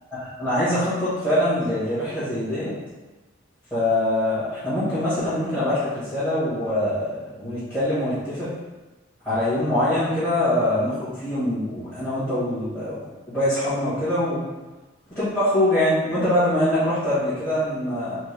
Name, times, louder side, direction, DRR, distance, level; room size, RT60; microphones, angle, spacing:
voice 1, 0.1-2.7 3.7-8.5 9.2-12.9 13.3-14.4 15.1-18.2, left 1 dB, 10° left, -17 dB, 1.4 m, -23 dB
4.4 x 2.2 x 3.3 m, 1.1 s
head